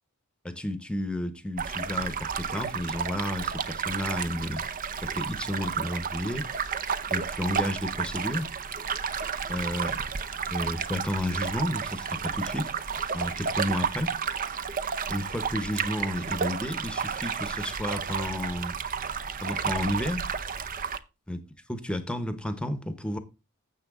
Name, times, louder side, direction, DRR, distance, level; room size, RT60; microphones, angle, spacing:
voice 1, 0.4-4.7 5.0-6.5 7.1-8.5 9.5-10.0 10.5-12.7 13.0-14.2 15.1-18.7 19.4-20.3 21.3-21.4 21.7-23.2, left 1 dB, 5° left, 0.9 m, -32 dB
sound 1, 1.6-21.0, right 6 dB, 40° right, 0.6 m, -32 dB
10.0 x 7.6 x 3.7 m
head